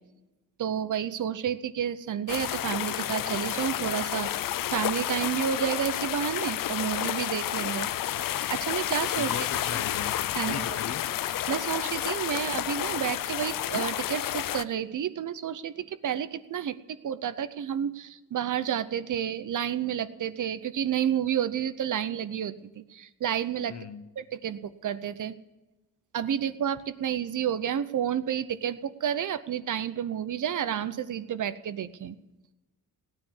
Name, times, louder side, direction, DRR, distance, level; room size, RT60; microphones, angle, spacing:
voice 1, 0.6-4.3 4.7-7.9 8.5-9.4 10.4-10.8 11.5-23.8 24.2-25.4 26.1-32.2, right 9 dB, 60° right, 13 dB, 0.8 m, -30 dB
sound 1, 2.3-14.6, left 12 dB, 70° left, 0.5 m, -30 dB
voice 2, 9.2-11.1 23.7-24.1, left 6 dB, 50° left, 12 dB, 0.9 m, -38 dB
17.0 x 9.9 x 7.2 m, 1.1 s
wide cardioid pair, 120°, 34 cm